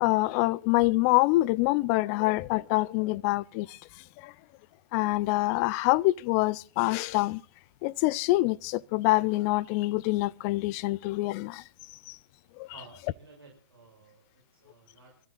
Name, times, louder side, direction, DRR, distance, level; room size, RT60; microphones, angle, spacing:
voice 1, 0.0-3.7 4.9-7.4 7.8-11.6, left 20 dB, 35° left, 0.6 m, -25 dB
voice 2, 12.7-15.3, right 3 dB, 75° right, 6.6 m, -54 dB
26.0 x 14.5 x 2.5 m
hypercardioid pair, 120°, 13 cm